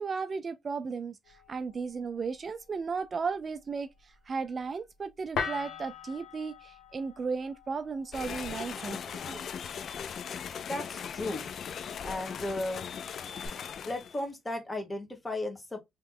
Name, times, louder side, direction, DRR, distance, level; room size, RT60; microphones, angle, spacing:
voice 1, 0.0-9.4, right 5 dB, 40° right, 0.4 m, -35 dB
sound 1, 1.2-13.5, left 6 dB, 75° left, 1.1 m, -44 dB
sound 2, 8.1-14.2, left 7 dB, 60° left, 0.4 m, -39 dB
voice 2, 10.6-11.5 12.0-12.9 13.9-15.8, left 1 dB, 20° left, 1.4 m, -35 dB
3.1 x 2.9 x 3.6 m
cardioid pair, 90°, 0 cm